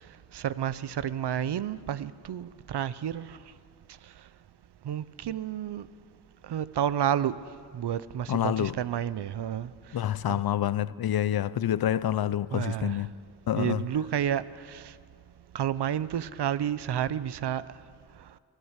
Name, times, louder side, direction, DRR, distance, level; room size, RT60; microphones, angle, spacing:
voice 1, 0.3-3.4 4.8-5.9 6.5-7.4 7.7-9.7 10.3-10.4 12.5-13.0 13.6-14.8 15.5-17.6, right 10 dB, 85° right, 0.7 m, -30 dB
voice 2, 8.3-8.8 9.9-13.1 13.5-13.8, left 11 dB, 65° left, 0.6 m, -27 dB
23.5 x 17.0 x 8.1 m
cardioid pair, 65°, 39 cm